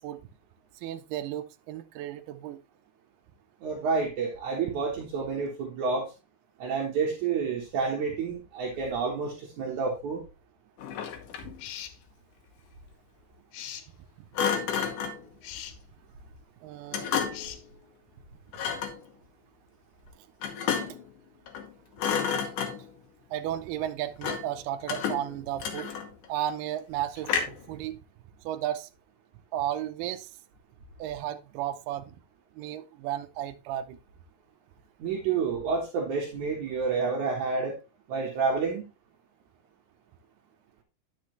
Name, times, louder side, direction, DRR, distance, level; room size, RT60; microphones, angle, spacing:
voice 1, 0.8-2.6 11.4-11.5 16.6-17.1 20.9-21.0 23.3-25.9 26.3-28.0 28.4-28.9 29.5-30.3 31.0-32.2 32.6-34.0, right 12 dB, 80° right, 2.4 m, -34 dB
voice 2, 3.6-6.1 6.6-10.2 35.0-37.8 38.1-38.8, right 5 dB, 60° right, 2.2 m, -29 dB
Thump thud, 10.8-11.6 14.3-15.2 16.9-17.6 18.5-19.0 20.4-21.1 21.5-21.7 22.0-23.0 24.2-24.6 24.9-26.3 27.2-27.7, left 7 dB, 70° left, 2.1 m, -31 dB
sound 1, 11.6-12.0 13.5-13.9 15.4-15.8 17.3-17.6, left 11 dB, 85° left, 3.0 m, -40 dB
10.0 x 6.5 x 3.1 m
omnidirectional pair, 5.1 m